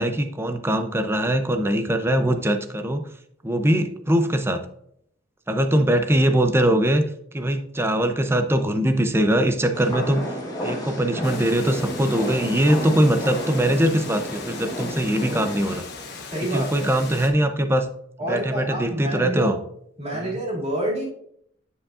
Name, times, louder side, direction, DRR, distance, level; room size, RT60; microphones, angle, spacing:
voice 1, 0.0-3.0 3.4-4.6 5.5-7.0 7.3-10.2 10.5-15.8 16.5-17.9 18.3-19.6 20.1-20.3, right 1 dB, 10° right, 8 dB, 0.5 m, -21 dB
sound 1, 9.7-15.8, equal, 20° left, 1.2 m, -32 dB
Water, 11.2-17.3, left 4 dB, 55° left, 1.1 m, -38 dB
voice 2, 16.3-16.9 18.2-19.6 20.0-21.0, right 1 dB, 30° right, -3 dB, 2.3 m, -28 dB
9.6 x 5.0 x 2.4 m, 0.70 s
head